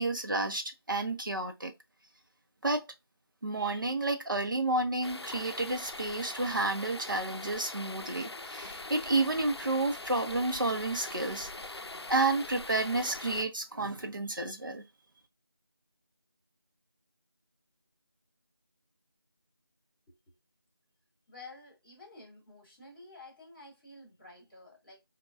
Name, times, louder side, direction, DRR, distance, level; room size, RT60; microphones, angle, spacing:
voice 1, 0.0-1.7 2.6-2.9 3.4-11.5 12.1-14.8, right 2 dB, 55° right, 0.7 m, -31 dB
sound 1, 5.0-13.4, left 2 dB, 85° left, 0.5 m, -42 dB
voice 2, 21.3-25.0, left 2 dB, 25° left, 2.0 m, -51 dB
5.1 x 2.3 x 2.4 m
figure-of-eight pair, 175°, 13 cm